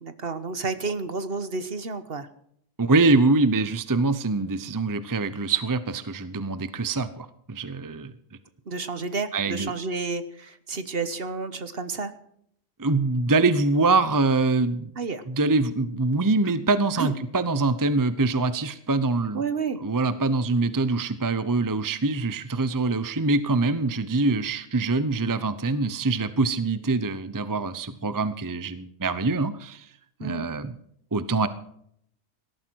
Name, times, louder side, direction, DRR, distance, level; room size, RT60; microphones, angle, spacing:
voice 1, 0.0-2.3 8.7-12.1 15.0-15.2 17.0-17.1 19.3-19.8 30.2-30.4, right 4 dB, 50° right, 11 dB, 1.4 m, -30 dB
voice 2, 2.8-8.1 9.3-9.7 12.8-14.9 15.3-19.4 19.8-29.9 30.2-30.8 31.1-31.5, right 3 dB, 20° right, 13 dB, 0.8 m, -24 dB
18.0 x 13.5 x 4.7 m, 0.68 s
omnidirectional pair, 1.3 m